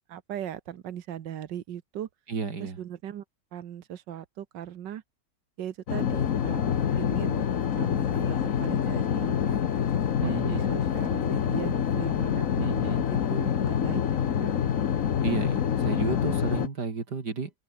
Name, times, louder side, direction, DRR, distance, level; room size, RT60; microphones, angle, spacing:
voice 1, 0.1-2.1 2.6-3.2 3.5-5.0 5.6-7.5 7.8-9.7 10.2-12.5 13.3-14.5 16.3-16.4, right 10 dB, 90° right, 1.8 m, -39 dB
voice 2, 2.3-2.8 10.2-10.7 12.6-13.1 15.2-17.5, right 5 dB, 70° right, 3.2 m, -32 dB
sound 1, 5.9-16.7, left 8 dB, 55° left, 1.4 m, -26 dB
omnidirectional pair, 1.9 m